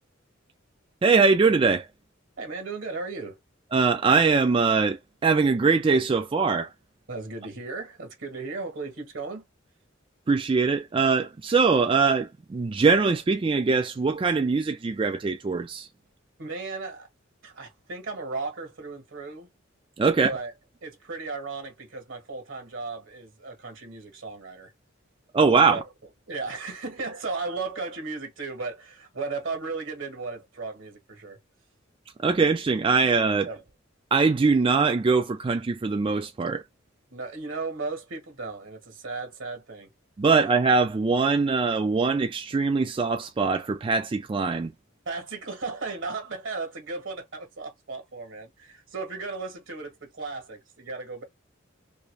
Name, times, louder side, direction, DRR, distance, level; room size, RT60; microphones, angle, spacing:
voice 1, 1.0-1.9 3.7-6.7 10.3-15.9 20.0-20.3 25.3-25.8 32.2-33.5 34.1-36.6 40.2-44.7, right 4 dB, 25° right, 0.3 m, -22 dB
voice 2, 2.4-3.4 7.1-9.4 16.4-17.1 17.4-19.5 20.2-20.5 20.8-24.7 25.7-25.8 26.3-31.4 33.4-33.6 37.1-39.9 45.0-51.2, right 3 dB, 70° right, 1.3 m, -35 dB
2.9 x 2.6 x 3.2 m
head